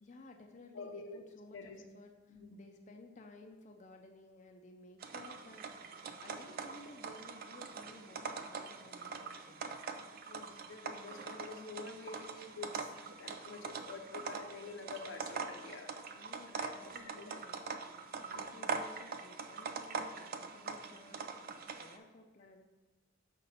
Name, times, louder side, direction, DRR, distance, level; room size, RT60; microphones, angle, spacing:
voice 1, 0.0-9.9 16.1-17.7 18.2-22.7, left 2 dB, 40° left, 3 dB, 0.5 m, -56 dB
voice 2, 0.7-1.2 1.5-1.8 2.3-2.7 10.2-15.9 16.5-17.4 17.9-18.0 18.3-18.4, left 4 dB, 80° left, 4 dB, 0.7 m, -48 dB
sound 1, 5.0-22.0, right 4 dB, 50° right, 0.4 m, -43 dB
5.3 x 4.1 x 5.4 m, 1.2 s
head